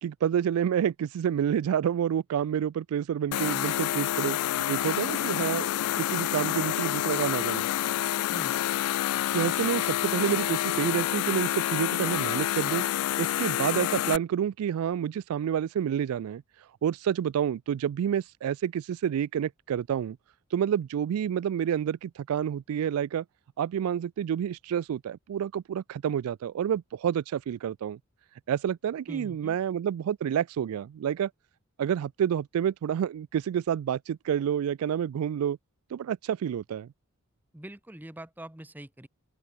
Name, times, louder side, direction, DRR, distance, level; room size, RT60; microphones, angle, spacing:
voice 1, 0.0-4.4 4.7-5.7 6.0-7.7 9.3-16.4 16.8-20.2 20.5-23.2 23.6-28.0 28.5-31.3 31.8-35.6 35.9-36.9, right 9 dB, 85° right, 0.3 m, -29 dB
sound 1, 3.3-14.2, left 12 dB, 85° left, 0.3 m, -28 dB
voice 2, 29.1-29.6 37.5-39.1, right 1 dB, 10° right, 0.7 m, -43 dB
open air
head